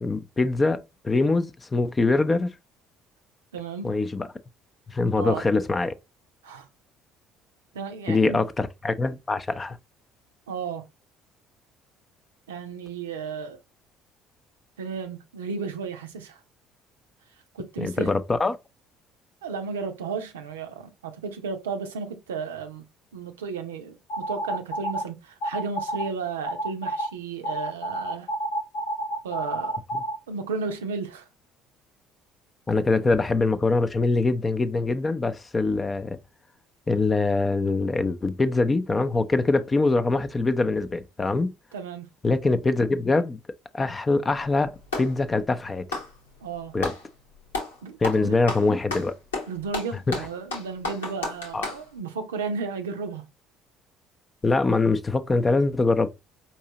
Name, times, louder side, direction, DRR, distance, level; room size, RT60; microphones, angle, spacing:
voice 1, 0.0-2.5 3.8-4.3 4.9-5.9 8.1-9.8 17.8-18.6 29.9-30.0 32.7-36.2 36.9-41.5 42.2-43.4 43.7-44.7 45.0-45.9 46.7-46.9 48.0-49.1 50.1-50.2 51.5-51.7 54.4-56.1, left 3 dB, 25° left, 0.5 m, -23 dB
voice 2, 3.5-4.0 5.1-5.5 6.4-6.7 7.7-8.4 10.5-10.8 12.5-13.6 14.8-16.4 17.5-18.2 19.4-22.8 23.1-28.3 29.2-29.8 30.3-31.3 41.7-42.1 46.4-46.7 47.8-48.4 49.5-53.2, right 5 dB, 80° right, 0.5 m, -33 dB
sound 1, 24.1-25.0 25.4-26.1 26.4-27.1 27.4-30.2, right 1 dB, 65° left, 0.9 m, -29 dB
Clapping, 44.2-45.2 45.8-47.0 47.5-47.8 48.0-51.8, left 3 dB, 85° left, 1.1 m, -32 dB
4.6 x 2.8 x 2.8 m
hypercardioid pair, 55°, 0 cm